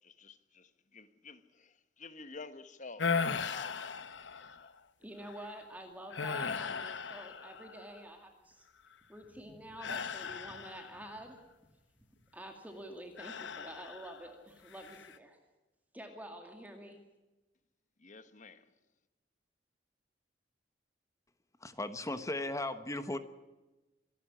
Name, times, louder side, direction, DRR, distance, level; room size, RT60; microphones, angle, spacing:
voice 1, 0.0-3.1 3.4-4.1 4.4-4.7 18.0-18.7, left 3 dB, 45° left, 1.4 m, -51 dB
sound 1, 3.0-4.7 5.3-5.5 6.1-8.0 9.8-11.1 13.2-14.3 14.7-15.2, left 5 dB, 85° left, 1.0 m, -37 dB
voice 2, 5.0-8.7 9.1-11.4 12.3-15.4 15.9-17.0, right 1 dB, 10° right, 2.2 m, -48 dB
voice 3, 21.6-23.2, left 2 dB, 20° left, 1.2 m, -36 dB
26.0 x 11.0 x 10.0 m
head